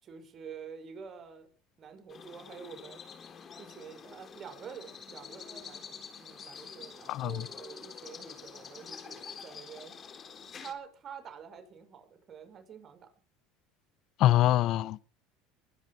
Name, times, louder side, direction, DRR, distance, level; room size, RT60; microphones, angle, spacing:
voice 1, 0.0-1.5 1.8-3.0 3.6-10.0 10.6-13.1, right 7 dB, 40° right, 6.2 m, -47 dB
sound 1, 2.1-10.7, left 6 dB, 35° left, 3.9 m, -47 dB
voice 2, 7.1-7.4 14.2-15.0, left 14 dB, 55° left, 0.9 m, -24 dB
23.5 x 9.8 x 5.9 m
supercardioid pair, 95°, 0 cm